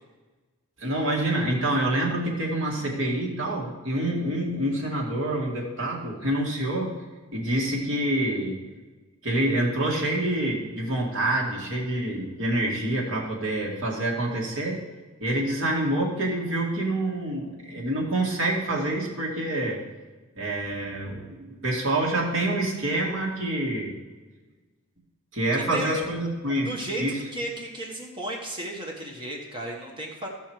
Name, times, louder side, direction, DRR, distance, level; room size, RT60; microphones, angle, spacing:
voice 1, 0.8-7.0 7.3-8.6 9.2-14.8 15.2-19.8 20.4-23.9 25.3-26.7 27.0-27.2, right 1 dB, 60° right, -2 dB, 2.2 m, -27 dB
voice 2, 25.5-26.0 26.6-27.0 27.3-30.3, right 1 dB, 20° right, 0 dB, 1.3 m, -34 dB
14.5 x 5.5 x 4.7 m, 1.3 s
head